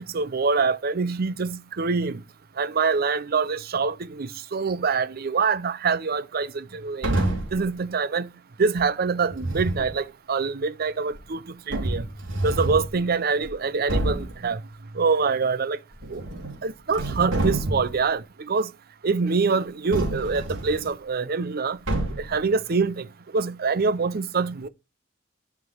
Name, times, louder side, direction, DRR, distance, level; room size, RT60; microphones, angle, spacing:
voice 1, 0.1-2.2 2.6-7.1 7.5-8.3 8.6-11.4 11.7-12.0 12.4-14.6 15.0-15.8 16.1-16.2 16.6-18.7 19.0-21.8 22.2-23.1 23.3-24.7, right 4 dB, 50° right, 0.6 m, -25 dB
sound 1, 7.0-7.6 9.3-9.9 11.1-11.2 11.7-12.9 13.4-13.5 13.9-14.4 15.9-16.6 16.9-18.0 19.9-20.9 21.9-22.4, right 1 dB, 90° right, 3.1 m, -27 dB
9.6 x 5.9 x 4.5 m
head